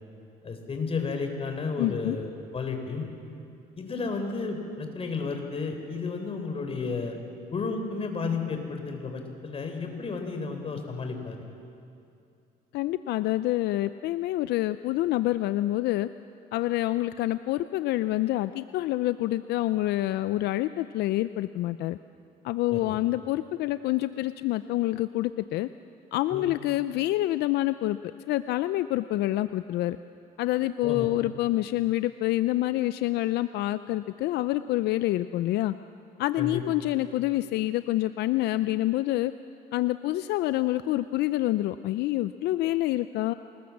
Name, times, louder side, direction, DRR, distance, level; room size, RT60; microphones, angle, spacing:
voice 1, 0.4-3.1 3.8-7.2 7.5-11.4 22.7-23.0 26.3-26.5 30.8-31.1 36.4-36.6, left 4 dB, 35° left, 5 dB, 3.8 m, -32 dB
voice 2, 1.8-2.2 12.7-16.1 16.5-22.0 22.4-25.7 26.1-28.0 28.3-30.0 30.4-35.7 36.2-39.3 39.7-43.3, left 16 dB, 80° left, 13 dB, 0.5 m, -27 dB
26.0 x 20.0 x 7.3 m, 2.6 s
cardioid pair, 110°, 17 cm